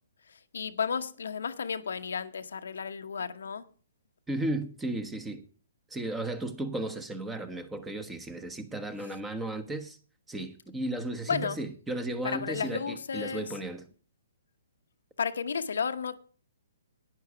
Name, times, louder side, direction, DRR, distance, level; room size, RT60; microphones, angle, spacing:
voice 1, 0.5-3.7 11.3-11.6 12.2-13.5 15.2-16.2, left 6 dB, 80° left, 0.9 m, -32 dB
voice 2, 4.3-5.4 5.9-10.0 10.3-13.8, right 1 dB, 10° right, 1.2 m, -35 dB
11.0 x 9.8 x 4.9 m
hypercardioid pair, 145°, 0 cm